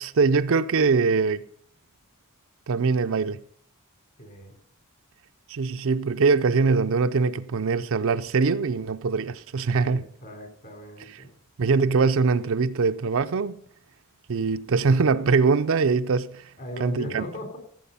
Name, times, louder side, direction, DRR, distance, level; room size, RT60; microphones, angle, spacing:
voice 1, 0.0-1.4 2.7-3.4 5.5-10.0 11.6-13.6 14.3-16.4 16.8-17.2, right 4 dB, 65° right, 0.5 m, -22 dB
voice 2, 4.2-4.6 9.8-11.3 16.6-17.6, left 1 dB, 50° left, 4.0 m, -38 dB
15.5 x 7.8 x 5.5 m
head